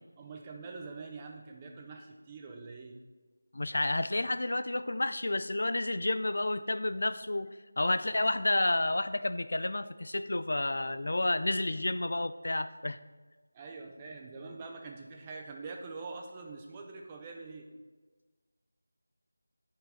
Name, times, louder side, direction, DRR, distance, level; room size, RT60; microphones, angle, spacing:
voice 1, 0.2-3.0 13.5-17.7, right 4 dB, 15° right, 2 dB, 0.5 m, -44 dB
voice 2, 3.5-7.5 7.8-13.0, left 2 dB, 65° left, 12 dB, 0.3 m, -30 dB
9.0 x 4.6 x 4.3 m, 1.3 s
figure-of-eight pair, 175°, 0 cm